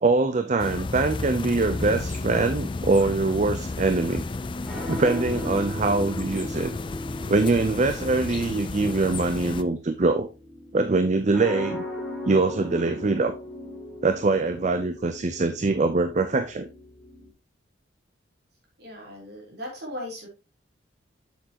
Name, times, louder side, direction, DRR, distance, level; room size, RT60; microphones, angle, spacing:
voice 1, 0.0-4.2 4.9-6.7 7.3-10.3 10.7-11.8 12.3-13.3 14.0-16.7, right 3 dB, 35° right, 0.5 m, -23 dB
sound 1, 0.6-9.6, left 3 dB, 25° left, 0.4 m, -32 dB
sound 2, 1.5-17.3, left 1 dB, 5° left, 2.2 m, -39 dB
voice 2, 18.8-20.3, left 1 dB, 55° right, 3.5 m, -37 dB
7.4 x 7.1 x 2.9 m
head